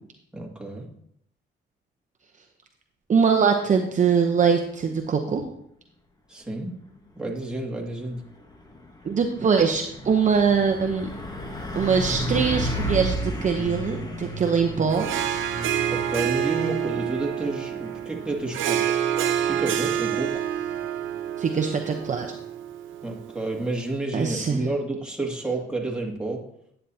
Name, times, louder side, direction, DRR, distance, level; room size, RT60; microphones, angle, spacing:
voice 1, 0.3-0.9 6.3-6.7 7.2-8.2 15.9-19.0 19.4-20.4 23.0-26.4, right 2 dB, 5° right, -2 dB, 2.1 m, -30 dB
voice 2, 3.1-5.5 9.0-11.1 11.7-15.1 21.4-22.3 24.1-24.7, right 6 dB, 40° right, 3 dB, 0.8 m, -22 dB
Truck, 7.9-22.2, right 1 dB, 20° left, 1.4 m, -34 dB
Harp, 14.9-23.5, right 10 dB, 80° right, 0.7 m, -28 dB
9.9 x 8.8 x 2.8 m, 0.72 s
cardioid pair, 90°, 20 cm